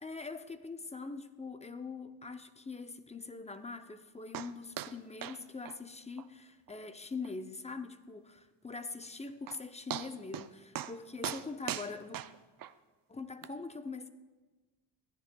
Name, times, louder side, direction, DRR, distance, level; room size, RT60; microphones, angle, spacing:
voice 1, 0.0-12.2 13.1-14.1, left 4 dB, 15° left, 0.5 m, -43 dB
sound 1, 4.3-4.5 4.8-4.9 5.2-5.4 5.6-5.8 6.2-6.3 6.7-6.8 7.2-7.3 9.0-9.1 9.5-9.6 9.9-10.5 10.7-10.9 11.2-12.7 13.4-13.5, right 11 dB, 45° right, 0.5 m, -39 dB
20.5 x 13.0 x 2.2 m
cardioid pair, 120°, 48 cm